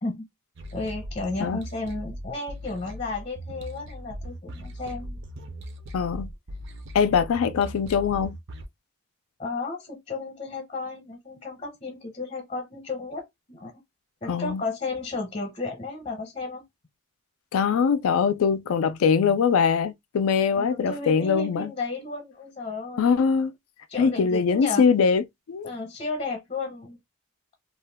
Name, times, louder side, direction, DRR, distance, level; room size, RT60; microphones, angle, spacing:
sound 1, 0.6-8.7, equal, 55° right, 0.5 m, -39 dB
voice 1, 0.7-5.2 9.4-13.7 14.2-16.6 20.5-23.1 23.9-24.9 25.6-27.0, left 3 dB, 30° left, 0.7 m, -33 dB
voice 2, 5.9-6.3 6.9-8.4 14.3-14.6 17.5-21.7 23.0-23.5 24.0-25.7, left 6 dB, 75° left, 0.3 m, -22 dB
2.4 x 2.1 x 3.3 m
head